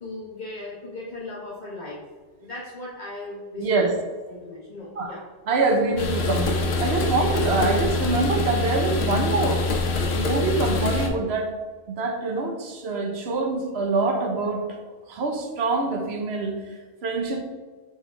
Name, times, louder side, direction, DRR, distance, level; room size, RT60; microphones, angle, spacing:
voice 1, 0.0-2.0 2.4-4.0 4.3-5.2, left 2 dB, 45° left, -7 dB, 1.3 m, -37 dB
voice 2, 3.6-3.9 5.0-5.1 5.5-9.7 10.1-11.5 11.9-14.8 15.1-17.4, right 3 dB, 75° right, 4 dB, 1.2 m, -25 dB
sound 1, 6.0-11.1, left 3 dB, 75° left, 1.1 m, -25 dB
6.8 x 3.5 x 4.5 m, 1.4 s
omnidirectional pair, 1.1 m